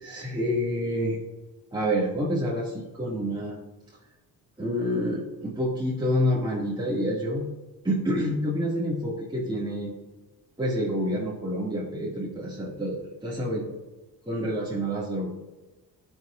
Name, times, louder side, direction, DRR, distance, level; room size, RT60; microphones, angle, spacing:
voice 1, 0.0-1.2 1.7-3.5 4.6-7.5 7.8-9.9 10.6-13.7 14.2-15.3, equal, 10° right, -7 dB, 2.6 m, -28 dB
12.0 x 6.6 x 2.7 m, 1.1 s
cardioid pair, 85°, 40 cm